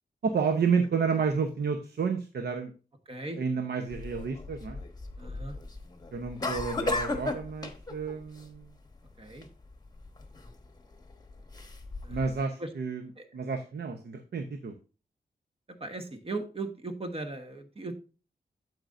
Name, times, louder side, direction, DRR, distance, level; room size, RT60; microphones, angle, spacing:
voice 1, 0.2-2.7 3.4-4.8 6.1-8.7 12.1-13.0 13.3-14.7, right 5 dB, 80° right, 7 dB, 0.9 m, -30 dB
voice 2, 3.1-3.4 5.2-5.6 9.2-9.5 12.0-12.2 12.6-12.7 13.2-13.3 15.7-17.9, right 2 dB, 35° right, 7 dB, 1.2 m, -38 dB
sound 1, 3.9-12.4, left 2 dB, 25° left, 1.1 m, -36 dB
9.0 x 7.9 x 2.6 m, 0.34 s
wide cardioid pair, 100°, 17 cm